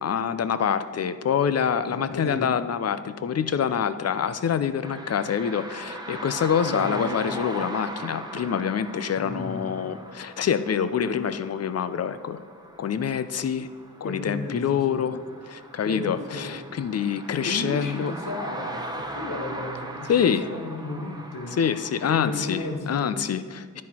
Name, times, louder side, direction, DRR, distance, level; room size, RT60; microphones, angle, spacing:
voice 1, 0.0-12.4 12.8-13.7 14.0-15.2 15.5-18.1 20.1-20.5 21.5-23.8, left 7 dB, 50° left, 13 dB, 0.5 m, -26 dB
voice 2, 1.9-2.6 6.6-7.2 9.1-9.8 14.0-15.1 15.8-16.5 17.4-21.6 22.0-23.3, left 2 dB, 75° left, 2 dB, 1.1 m, -34 dB
sound 1, 4.8-22.8, right 1 dB, 10° right, 0.9 m, -39 dB
10.5 x 4.2 x 4.3 m, 2.1 s
cardioid pair, 55°, 32 cm